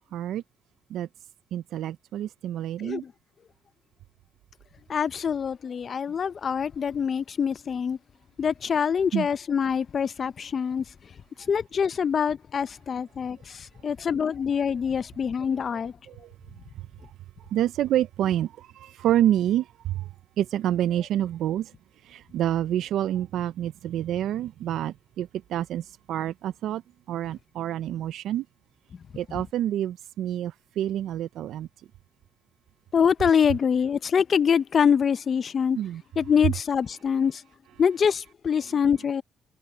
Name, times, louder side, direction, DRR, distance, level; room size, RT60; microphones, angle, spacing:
voice 1, 0.1-0.4 0.9-1.1 1.5-3.0 9.1-9.3 16.1-16.3 17.5-20.1 20.4-21.7 22.0-26.8 27.1-28.4 29.2-31.7 35.8-36.0, right 12 dB, 80° right, 0.4 m, -28 dB
voice 2, 2.8-3.1 4.9-8.0 8.4-10.8 11.5-15.9 29.3-29.4 32.9-35.8 36.2-37.4 37.8-39.2, left 7 dB, 50° left, 0.6 m, -25 dB
cardioid pair, 90°, 0 cm